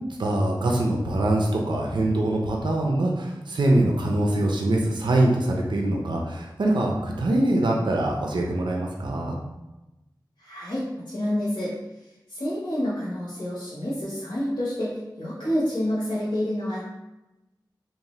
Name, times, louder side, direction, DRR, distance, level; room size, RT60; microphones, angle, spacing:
voice 1, 0.2-9.4, right 1 dB, 75° right, 0 dB, 0.4 m, -23 dB
voice 2, 10.4-11.7 12.3-16.9, left 1 dB, 70° left, -9 dB, 0.8 m, -28 dB
2.7 x 2.0 x 3.0 m, 0.99 s
wide cardioid pair, 50°, 8 cm